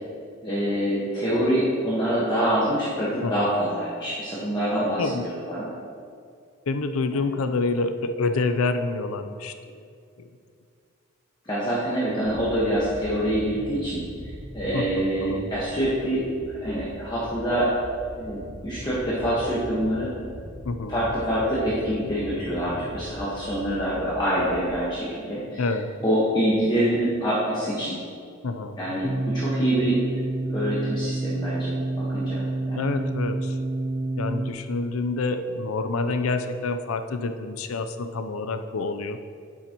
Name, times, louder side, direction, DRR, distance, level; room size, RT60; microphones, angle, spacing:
voice 1, 0.4-5.1 5.5-5.7 7.1-7.3 11.4-14.0 14.5-16.2 16.6-17.7 18.2-20.1 20.9-25.6 26.0-28.0 28.8-30.0 30.5-32.4 32.7-32.9, equal, 20° left, -9 dB, 1.3 m, -25 dB
voice 2, 3.2-3.5 5.0-5.3 6.7-9.9 10.2-10.3 12.1-12.2 14.7-15.5 20.6-21.0 25.6-25.9 28.4-28.8 32.8-33.6 34.2-39.2, left 3 dB, 80° left, 8 dB, 0.5 m, -27 dB
sound 1, 12.2-24.8, equal, 50° right, 1.7 m, -41 dB
sound 2, 29.0-34.5, right 2 dB, 30° right, 0.5 m, -28 dB
9.3 x 7.3 x 2.9 m, 2.3 s
head